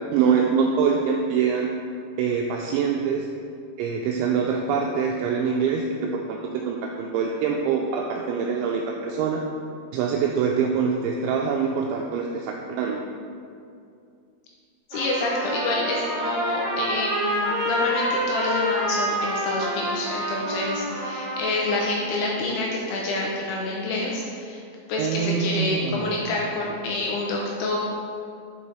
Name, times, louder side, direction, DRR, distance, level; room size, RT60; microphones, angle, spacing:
voice 1, 0.1-1.7 2.2-3.3 3.8-9.4 9.9-13.0 25.0-26.2, right 6 dB, 85° right, 1 dB, 2.7 m, -24 dB
voice 2, 14.9-24.6 24.9-27.8, left 2 dB, 80° left, -2 dB, 2.8 m, -27 dB
Trumpet, 14.9-22.0, equal, 60° right, 2.1 m, -27 dB
7.3 x 5.4 x 4.9 m, 2.4 s
omnidirectional pair, 5.8 m